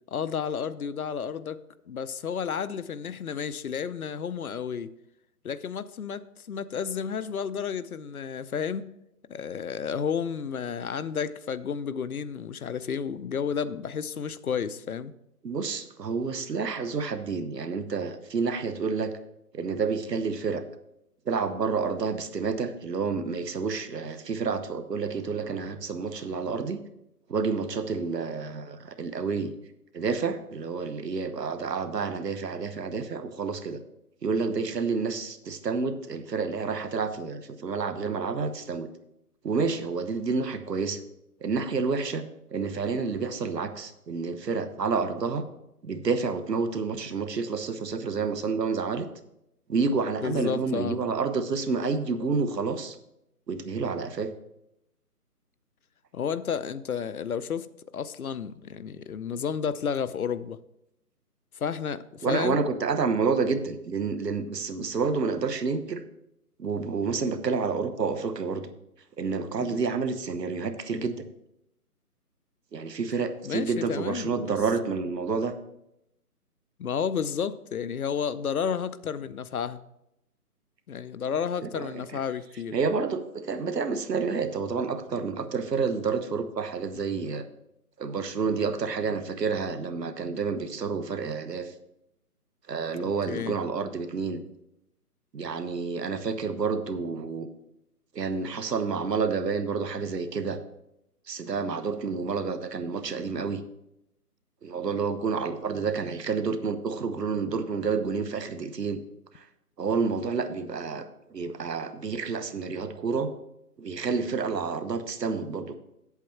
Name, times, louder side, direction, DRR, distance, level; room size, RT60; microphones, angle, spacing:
voice 1, 0.1-1.6 1.9-4.9 5.4-8.9 9.3-15.1 50.2-51.0 56.1-57.7 57.9-60.6 61.6-62.6 69.6-69.8 73.4-74.6 76.8-79.8 80.9-82.7 93.0-93.6, left 7 dB, 65° left, 0.6 m, -31 dB
voice 2, 15.4-19.1 19.5-20.6 21.3-26.8 27.3-29.5 29.9-33.8 34.2-38.9 39.4-41.0 41.4-45.4 45.8-49.1 49.7-53.0 53.5-54.3 62.2-66.0 66.6-68.7 69.2-71.3 72.7-75.5 81.6-82.2 82.7-87.5 88.0-91.7 92.7-94.4 95.3-97.5 98.1-100.6 101.3-103.6 104.6-109.0 109.3-109.5 109.8-113.3 113.8-115.7, right 5 dB, 90° right, 1.1 m, -29 dB
8.3 x 8.0 x 4.4 m
hypercardioid pair, 170°, 47 cm